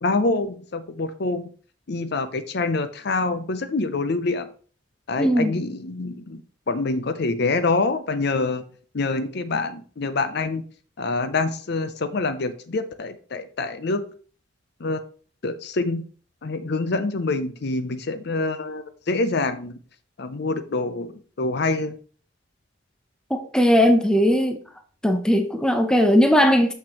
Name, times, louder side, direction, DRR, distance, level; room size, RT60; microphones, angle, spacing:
voice 1, 0.0-1.5 1.9-4.5 5.1-6.4 6.7-8.6 8.9-10.6 11.0-14.0 14.8-15.0 15.4-16.0 16.4-19.8 20.2-21.1 21.4-21.9, left 3 dB, 55° left, 0.6 m, -26 dB
voice 2, 5.2-5.6 23.3-24.6 25.0-26.7, equal, 5° left, 0.6 m, -18 dB
6.6 x 6.1 x 3.0 m
head